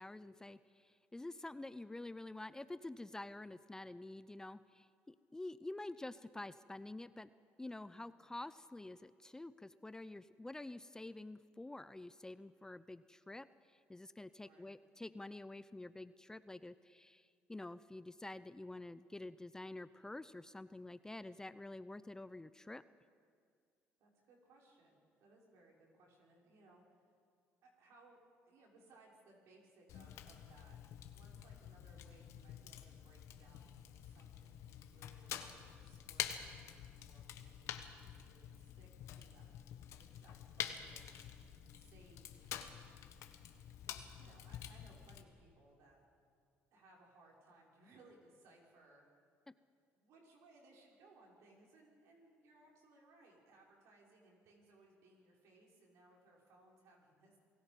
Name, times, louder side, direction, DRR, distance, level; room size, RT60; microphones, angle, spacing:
voice 1, 0.0-7.3 7.6-13.5 13.9-22.8, left 2 dB, 10° left, 15 dB, 0.5 m, -48 dB
voice 2, 7.9-8.3 14.4-14.8 24.0-27.1 27.6-28.2 28.5-30.8 31.1-39.5 40.0-42.7 43.8-46.1 46.7-49.0 49.9-57.4, right 2 dB, 70° right, -2 dB, 5.8 m, -65 dB
Fire, 29.9-45.2, left 10 dB, 70° left, 1.5 m, -48 dB
28.5 x 19.0 x 5.4 m, 2.2 s
supercardioid pair, 90°, 5 cm